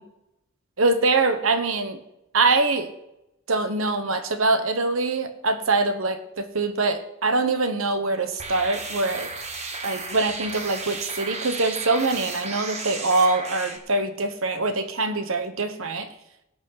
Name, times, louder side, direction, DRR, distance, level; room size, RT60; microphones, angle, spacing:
voice 1, 0.8-2.0 2.3-2.9 3.5-9.3 9.8-16.1, right 3 dB, 75° right, 9 dB, 1.2 m, -24 dB
sound 1, 8.4-13.8, right 3 dB, 30° right, 1.4 m, -34 dB
18.5 x 6.2 x 5.8 m, 0.89 s
head